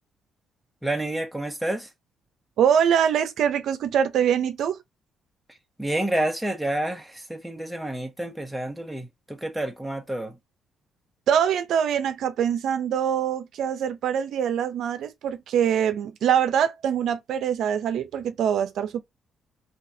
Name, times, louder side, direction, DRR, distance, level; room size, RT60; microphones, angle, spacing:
voice 1, 0.8-1.9 5.8-10.4, right 1 dB, 5° right, 1.0 m, -29 dB
voice 2, 2.6-4.8 11.3-19.0, right 8 dB, 75° right, 0.5 m, -24 dB
4.0 x 2.8 x 2.6 m
cardioid pair, 90°, 0 cm